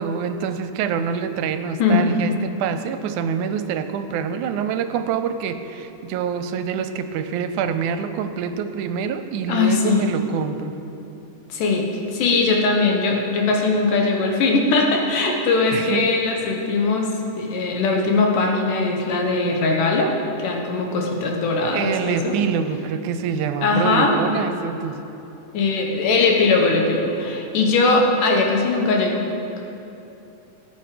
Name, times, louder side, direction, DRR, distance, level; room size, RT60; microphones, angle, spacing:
voice 1, 0.0-10.7 15.7-16.1 21.7-25.0, right 7 dB, 80° right, 9 dB, 2.0 m, -26 dB
voice 2, 1.8-2.1 9.5-10.0 11.5-17.1 17.4-22.3 23.6-24.2 25.5-29.3, left 3 dB, 85° left, 1 dB, 2.9 m, -20 dB
18.5 x 8.1 x 5.1 m, 2.9 s
omnidirectional pair, 3.6 m